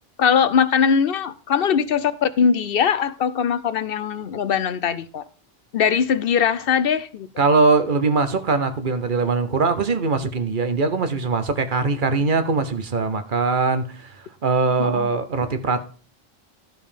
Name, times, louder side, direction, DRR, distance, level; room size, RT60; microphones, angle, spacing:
voice 1, 0.2-5.2 5.7-7.3 14.7-15.1, left 7 dB, 70° left, 14 dB, 0.8 m, -21 dB
voice 2, 7.4-15.8, right 4 dB, 55° right, 9 dB, 1.1 m, -21 dB
12.0 x 5.4 x 5.0 m, 0.38 s
omnidirectional pair, 1.0 m